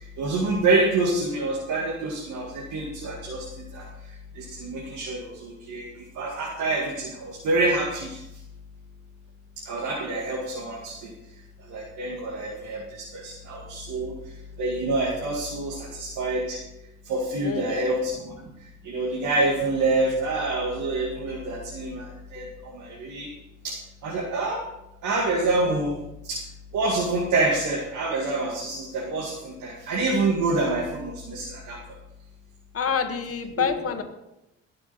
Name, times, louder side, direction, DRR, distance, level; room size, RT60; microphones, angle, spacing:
voice 1, 0.2-3.9 4.3-8.2 9.6-11.1 11.6-14.1 14.6-16.6 17.0-18.3 18.8-23.3 23.6-23.8 24.0-24.6 25.0-26.0 26.2-26.4 26.7-31.8 33.6-33.7, right 2 dB, 80° right, -2 dB, 2.2 m, -27 dB
voice 2, 17.4-17.9 32.7-34.0, left 6 dB, 50° left, 6 dB, 1.7 m, -27 dB
19.0 x 6.7 x 4.3 m, 0.90 s
cardioid pair, 90°, 30 cm